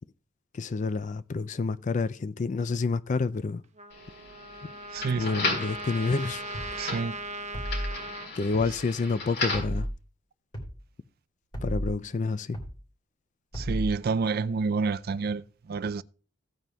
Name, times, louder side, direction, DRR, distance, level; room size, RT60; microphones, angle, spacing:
voice 1, 0.5-3.6 5.1-6.4 8.3-9.9 11.6-12.6, left 4 dB, 40° left, 0.4 m, -29 dB
Trumpet, 3.8-8.3, right 1 dB, 35° right, 0.8 m, -39 dB
sound 1, 3.9-9.8, left 3 dB, 60° left, 4.3 m, -35 dB
voice 2, 4.9-5.3 6.8-7.2 13.5-16.0, right 4 dB, 55° right, 0.4 m, -28 dB
sound 2, 6.5-6.8 7.5-7.9 8.5-8.8 9.5-9.9 10.5-10.8 11.5-11.9 12.5-12.8 13.5-13.9, equal, 25° left, 2.9 m, -33 dB
16.0 x 9.0 x 2.3 m
head